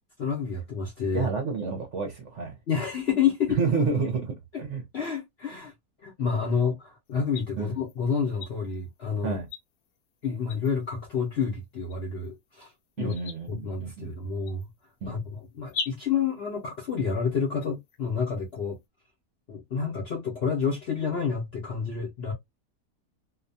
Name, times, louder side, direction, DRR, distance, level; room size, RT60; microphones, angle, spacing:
voice 1, 0.2-1.3 2.7-3.6 4.9-5.7 6.0-9.4 10.2-12.7 13.0-13.1 13.5-14.7 15.1-18.8 19.5-22.3, left 6 dB, 55° left, 0.7 m, -29 dB
voice 2, 1.1-2.5 3.5-4.8 7.6-7.8 9.2-9.5 13.0-14.1 15.0-15.2, right 5 dB, 55° right, 0.9 m, -29 dB
sound 1, 7.1-18.9, left 5 dB, 75° left, 1.1 m, -45 dB
2.7 x 2.2 x 2.5 m
omnidirectional pair, 1.8 m